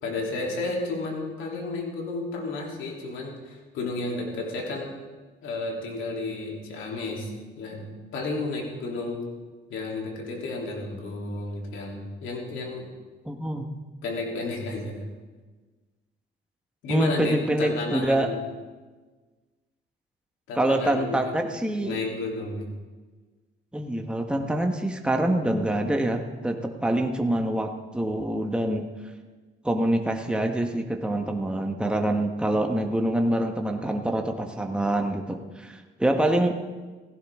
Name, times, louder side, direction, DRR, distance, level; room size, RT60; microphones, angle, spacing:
voice 1, 0.0-4.9 5.4-7.3 7.6-7.9 8.1-9.2 9.7-12.9 14.0-15.0 16.8-18.4 20.5-21.3 21.8-22.7, left 3 dB, 85° left, -1 dB, 3.3 m, -32 dB
voice 2, 13.2-13.7 16.9-18.3 20.5-22.0 23.7-28.8 29.6-36.7, right 1 dB, 5° right, 3 dB, 1.3 m, -25 dB
16.5 x 16.0 x 3.7 m, 1.3 s
cardioid pair, 90°, 20 cm